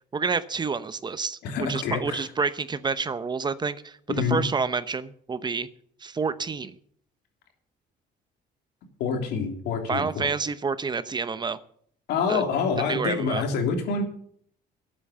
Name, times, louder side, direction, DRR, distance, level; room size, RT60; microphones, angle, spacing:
voice 1, 0.1-1.4 1.7-4.0 4.3-5.7 6.0-6.8 9.9-11.6 12.3-12.4 12.9-13.4, right 5 dB, 25° right, 14 dB, 0.8 m, -28 dB
voice 2, 1.4-2.3 4.1-4.4 9.0-10.3 12.1-14.0, left 5 dB, 80° left, 3 dB, 3.2 m, -27 dB
13.0 x 8.7 x 7.5 m, 0.62 s
cardioid pair, 110°, 17 cm